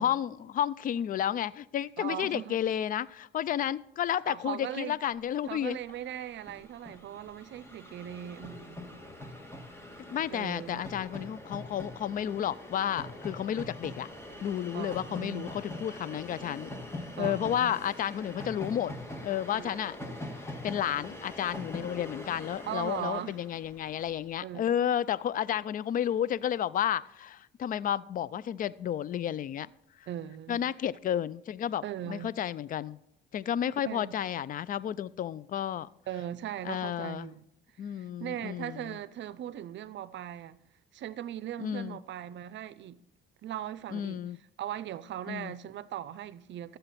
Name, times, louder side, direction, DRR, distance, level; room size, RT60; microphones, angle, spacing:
voice 1, 0.0-5.8 10.0-14.1 14.4-16.7 17.2-18.9 19.2-20.0 20.4-29.7 30.5-33.0 33.3-35.9 36.6-37.3 37.8-38.9 41.6-42.0 43.9-44.4 45.3-45.5, left 10 dB, 45° left, 0.4 m, -32 dB
voice 2, 2.0-2.6 4.3-5.0 5.5-8.9 10.3-10.8 14.7-15.5 17.2-17.8 19.6-19.7 22.7-23.4 24.4-24.7 30.1-30.6 31.8-32.3 33.9-34.2 36.1-37.4 37.9-40.6 40.9-43.0 43.4-44.2 44.6-46.8, right 11 dB, 65° right, 0.5 m, -39 dB
Train, 5.5-5.6 5.7-24.1, left 1 dB, 15° left, 1.9 m, -43 dB
13.0 x 7.9 x 4.1 m
cardioid pair, 90°, 20 cm